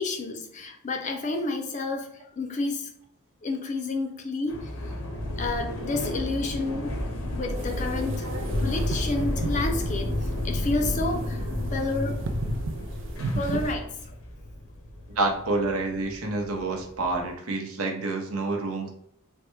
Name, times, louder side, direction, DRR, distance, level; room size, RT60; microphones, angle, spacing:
voice 1, 0.0-2.1 2.4-2.9 3.4-4.7 5.4-6.9 7.3-8.3 8.6-11.4 11.7-12.2 13.4-13.9, left 3 dB, 35° left, 3 dB, 0.4 m, -30 dB
sound 1, 4.5-17.3, left 1 dB, 75° left, 0.7 m, -31 dB
sound 2, 7.6-13.7, right 3 dB, 60° right, 0.3 m, -36 dB
voice 2, 15.2-18.9, right 3 dB, 85° right, 2 dB, 0.7 m, -28 dB
3.3 x 2.2 x 3.1 m, 0.68 s
head